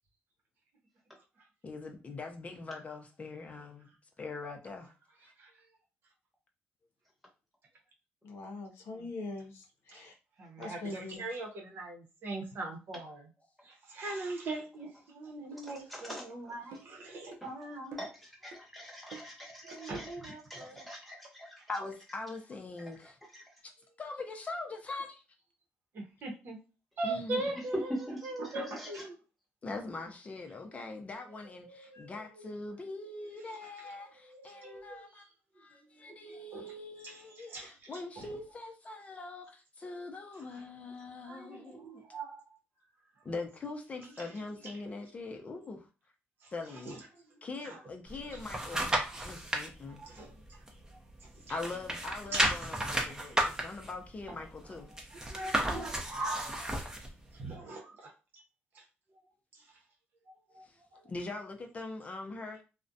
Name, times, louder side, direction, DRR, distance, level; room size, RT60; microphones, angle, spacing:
voice 1, 1.6-4.9 5.2-5.3 21.7-23.2 23.6-23.7 24.0-25.2 27.0-27.5 29.6-35.2 35.6-42.0 43.2-45.9 46.5-47.0 47.4-48.9 49.2-50.0 51.5-54.9 60.6-60.8 61.1-62.6, left 3 dB, 35° left, 0.5 m, -42 dB
voice 2, 8.2-10.1 10.6-11.2 31.9-32.1, left 3 dB, 80° left, 0.6 m, -42 dB
voice 3, 10.4-13.3 13.6-18.0 19.6-20.8 25.9-26.6 27.0-29.2 31.3-32.1 33.8-33.9 34.3-35.2 36.0-36.6 37.0-38.3 41.3-42.4 44.2-44.3 44.8-44.9 46.4-46.5 46.9-47.0 47.6-47.8 49.9-50.4 51.5-51.6 52.3-52.6 52.9-53.1 55.1-56.7 57.3-58.4 58.7-58.8 60.5-60.7, right 2 dB, 55° right, 0.7 m, -41 dB
sound 1, 15.5-15.6 16.1-16.3 16.7-17.0 17.3-17.5 17.9-18.2 18.5-18.7 19.1-19.4 19.7-19.9, right 3 dB, 90° right, 0.5 m, -48 dB
voice 4, 15.6-16.5 17.4-17.5 18.0-21.5 23.3-23.4 28.0-28.2 28.4-29.0, equal, ahead, 0.9 m, -46 dB
sound 2, 48.1-49.7 50.2-51.3 51.5-57.1 57.5-57.6, right 1 dB, 15° right, 0.6 m, -33 dB
2.4 x 2.1 x 2.6 m
cardioid pair, 100°, 4 cm